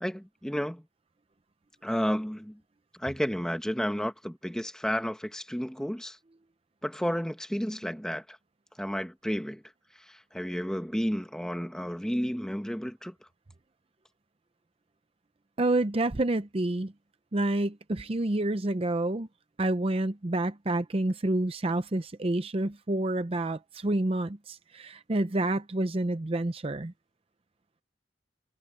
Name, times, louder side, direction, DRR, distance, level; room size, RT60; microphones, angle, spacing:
voice 1, 0.0-0.8 1.8-2.6 3.0-6.2 6.8-8.4 8.8-9.6 10.1-13.1, equal, 5° left, 1.3 m, -32 dB
voice 2, 15.6-16.9 17.3-19.3 19.6-26.9, right 2 dB, 30° right, 0.6 m, -28 dB
head